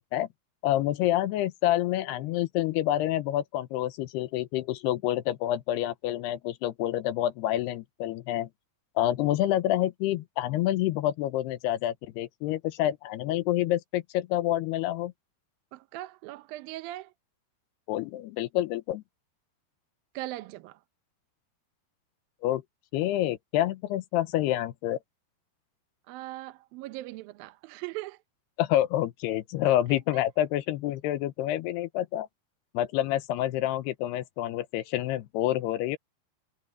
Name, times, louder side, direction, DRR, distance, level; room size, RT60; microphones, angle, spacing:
voice 1, 0.6-8.5 9.0-15.1 17.9-19.0 22.4-22.6 22.9-25.0 28.6-32.3 32.7-36.0, left 13 dB, 85° left, 2.9 m, -28 dB
voice 2, 15.7-17.1 20.1-20.8 26.1-28.2 30.1-30.2, right 17 dB, 75° right, 2.2 m, -39 dB
omnidirectional pair, 4.7 m